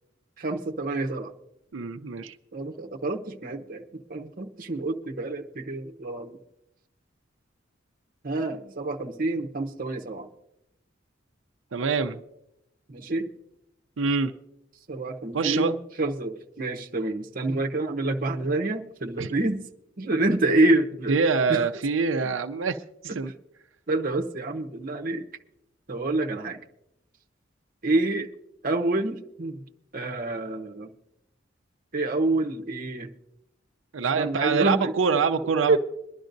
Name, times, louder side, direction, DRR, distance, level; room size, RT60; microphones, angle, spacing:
voice 1, 0.4-1.3 2.5-6.4 8.2-10.3 12.9-13.3 14.9-19.6 20.0-21.1 21.5-21.6 23.1-23.2 23.9-25.2 25.9-26.6 27.8-28.3 28.6-29.6 29.9-30.9 31.9-33.1 34.2-34.9 35.7-35.8, right 2 dB, 50° right, 3 dB, 0.9 m, -27 dB
voice 2, 1.7-2.4 11.7-12.2 14.0-14.3 15.3-15.7 19.2-19.3 21.1-22.8 23.0-23.3 33.9-35.8, right 5 dB, 90° right, 6 dB, 0.6 m, -25 dB
23.0 x 11.5 x 2.6 m, 0.81 s
head